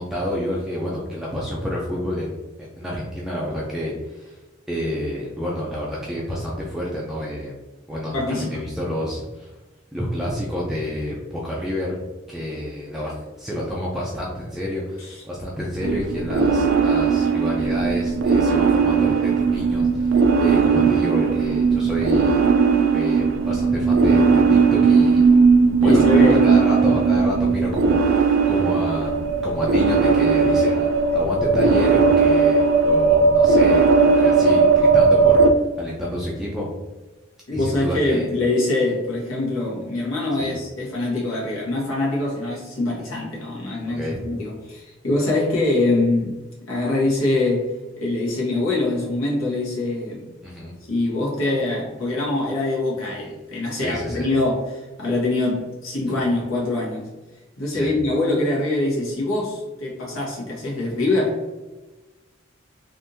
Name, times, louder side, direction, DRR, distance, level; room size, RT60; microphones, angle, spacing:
voice 1, 0.0-2.4 2.8-4.4 4.7-7.5 7.9-9.5 9.9-22.4 22.9-25.3 25.8-30.9 31.1-36.7 37.5-38.3 40.4-40.5 43.9-44.2 50.4-50.7 53.7-54.3 56.1-56.2 57.7-57.9, left 1 dB, ahead, -5 dB, 0.4 m, -29 dB
voice 2, 8.1-8.6 15.0-15.2 25.8-26.5 37.5-46.4 46.7-50.3 50.9-57.1 57.6-61.4, left 2 dB, 90° left, -4 dB, 1.3 m, -24 dB
sound 1, 15.8-35.5, right 5 dB, 75° right, 0.3 m, -17 dB
3.5 x 2.6 x 2.7 m, 1.2 s
head